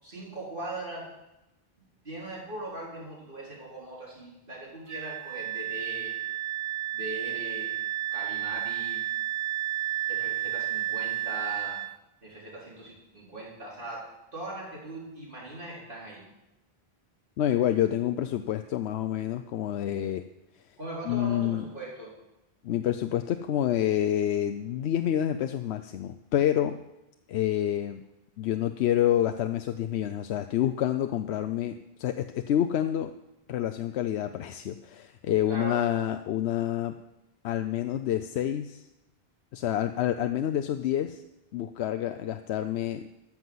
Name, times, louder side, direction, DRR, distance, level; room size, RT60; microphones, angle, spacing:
voice 1, 0.0-1.1 2.0-6.1 6.9-7.8 8.1-9.0 10.1-11.8 12.2-16.3 20.8-22.1 35.5-35.8, right 1 dB, 55° right, -5 dB, 4.2 m, -40 dB
Wind instrument woodwind instrument, 4.9-11.9, right 13 dB, 85° right, 0.9 m, -32 dB
voice 2, 17.4-20.2 21.1-21.6 22.6-26.8 27.3-28.0 28.4-33.1 33.5-37.0 37.4-38.9 39.5-41.2 41.5-43.0, left 11 dB, 85° left, 8 dB, 0.8 m, -28 dB
13.5 x 6.0 x 7.7 m, 0.92 s
omnidirectional pair, 1.1 m